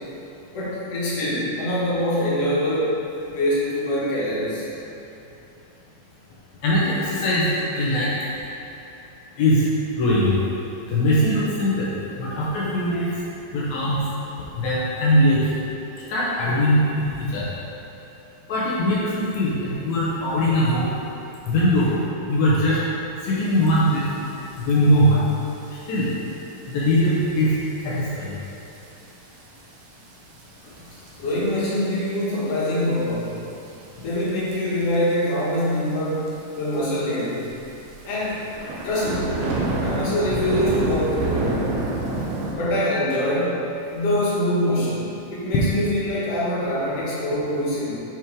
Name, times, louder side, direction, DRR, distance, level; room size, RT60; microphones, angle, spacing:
voice 1, 0.5-3.0 3.3-4.7 30.6-30.7 31.2-33.4 34.0-37.5 38.0-38.4 38.8-39.4 39.7-41.6 42.5-43.6 43.9-48.0, left 1 dB, 50° left, -8 dB, 2.1 m, -24 dB
voice 2, 6.6-7.4 7.7-8.1 9.4-9.7 10.0-10.3 10.9-11.9 12.2-13.1 13.5-14.0 14.6-15.5 16.1-17.4 18.5-20.9 21.5-21.9 22.3-22.8 23.2-24.1 24.7-25.2 25.9-26.1 26.7-27.6 27.8-28.4, equal, 80° left, -8 dB, 1.6 m, -20 dB
sound 1, 23.9-24.0 24.3-24.6 25.3-25.5 26.1-26.2 26.8-26.9 27.2-27.3 27.6-27.7 28.8-29.0 29.4-29.5 30.4-30.5 31.1-31.5 31.9-32.0 32.6-33.2 34.3-34.6 34.9-35.0 35.3-35.4 35.5-35.6 36.3-36.4 36.7-36.8 37.4-42.5, right 2 dB, 80° right, 1.9 m, -27 dB
8.7 x 4.7 x 3.7 m, 2.9 s
omnidirectional pair, 4.6 m